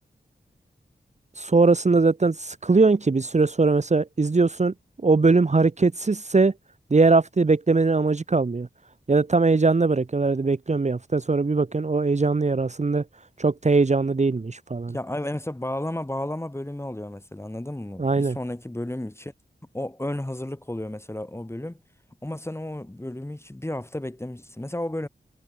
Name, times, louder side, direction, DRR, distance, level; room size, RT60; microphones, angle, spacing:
voice 1, 1.4-4.7 5.0-6.5 6.9-8.7 9.1-13.0 13.4-14.9 18.0-18.4, right 3 dB, 35° right, 1.0 m, -21 dB
voice 2, 14.9-19.3 19.7-21.8 22.2-25.1, left 1 dB, 15° left, 1.6 m, -32 dB
wide cardioid pair, 65°, 19 cm